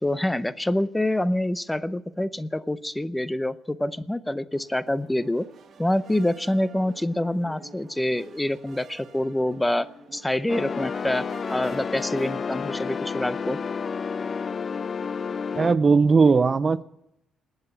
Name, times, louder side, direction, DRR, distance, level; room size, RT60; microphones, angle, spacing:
voice 1, 0.0-5.5 5.8-9.9 10.1-13.6, left 1 dB, 10° left, 16 dB, 0.7 m, -26 dB
sound 1, 4.5-12.8, right 5 dB, 55° right, 1.9 m, -49 dB
sound 2, 10.5-15.7, left 5 dB, 40° left, 0.6 m, -30 dB
voice 2, 15.6-16.8, right 4 dB, 35° right, 17 dB, 0.5 m, -18 dB
20.0 x 8.0 x 9.0 m, 0.81 s
cardioid pair, 90°, 0 cm